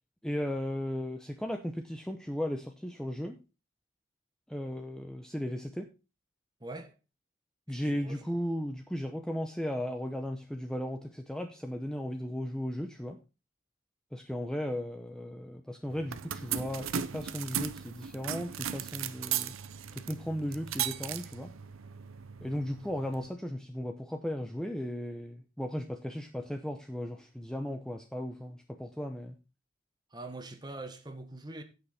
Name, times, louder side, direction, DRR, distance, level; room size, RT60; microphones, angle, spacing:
voice 1, 0.2-3.4 4.5-5.9 7.7-13.2 14.1-19.5 19.9-21.5 22.4-29.4, equal, 5° left, 0.7 m, -36 dB
voice 2, 6.6-7.0 7.7-8.3 30.1-31.6, right 2 dB, 20° right, 1.3 m, -43 dB
sound 1, 15.9-23.3, right 9 dB, 85° right, 0.7 m, -37 dB
16.0 x 5.6 x 4.2 m
head